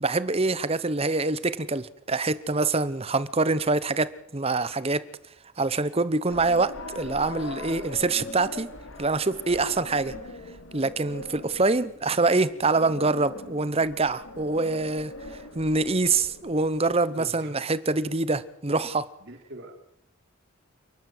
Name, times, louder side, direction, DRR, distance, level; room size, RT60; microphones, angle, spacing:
voice 1, 0.0-5.0 5.6-8.7 9.0-10.1 10.7-15.1 15.5-19.1, right 3 dB, 25° right, 0.8 m, -25 dB
sound 1, 6.3-16.9, left 2 dB, 65° left, 2.5 m, -42 dB
voice 2, 17.1-17.5 19.2-19.8, right 1 dB, 55° right, 3.2 m, -43 dB
29.0 x 12.0 x 7.8 m
head